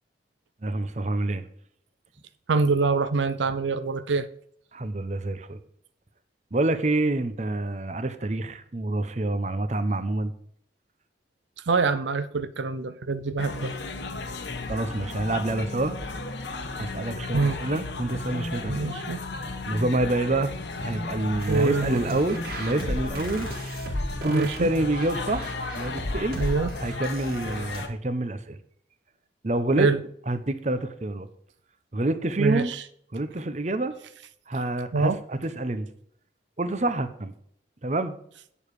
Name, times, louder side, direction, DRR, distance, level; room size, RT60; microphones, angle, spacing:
voice 1, 0.6-1.4 4.7-5.6 6.5-10.3 14.7-15.9 16.8-18.9 19.7-23.5 24.2-25.5 25.8-26.4 26.8-28.6 29.4-29.9 30.3-31.3 31.9-32.7 33.1-33.9 34.5-35.9 36.6-37.3 37.8-38.2, right 2 dB, 40° right, 0.8 m, -27 dB
voice 2, 2.5-4.3 11.7-13.7 17.3-17.6 18.7-19.2 21.5-22.2 24.3-24.7 26.3-26.7 29.8-30.0 32.4-32.8 34.9-35.2, right 4 dB, 85° right, 0.6 m, -25 dB
sound 1, 13.4-27.9, left 3 dB, 80° left, 1.3 m, -34 dB
sound 2, 21.4-27.8, equal, 55° right, 2.0 m, -35 dB
8.8 x 7.1 x 4.8 m
head